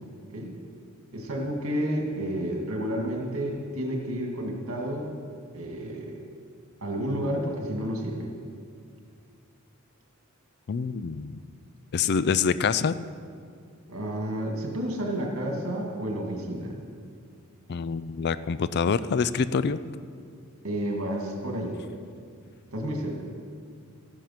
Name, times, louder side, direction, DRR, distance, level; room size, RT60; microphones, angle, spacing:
voice 1, 0.1-0.5 1.1-5.1 5.5-6.2 6.8-8.3 13.9-16.8 20.6-21.7 22.7-23.2, equal, 65° right, 1 dB, 2.2 m, -31 dB
voice 2, 10.7-11.4 11.9-13.0 17.7-19.8, left 6 dB, 50° left, 15 dB, 0.4 m, -26 dB
13.5 x 10.5 x 5.9 m, 2.4 s
head